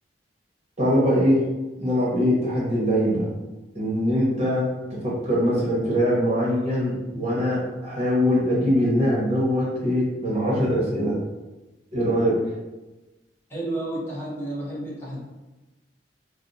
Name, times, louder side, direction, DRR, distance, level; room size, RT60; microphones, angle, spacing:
voice 1, 0.8-1.4 1.8-3.3 3.7-4.7 5.0-11.2 11.9-12.4, equal, 40° right, -6 dB, 0.9 m, -22 dB
voice 2, 13.5-15.2, right 1 dB, 15° left, -8 dB, 0.9 m, -31 dB
4.3 x 2.0 x 2.6 m, 1.1 s
head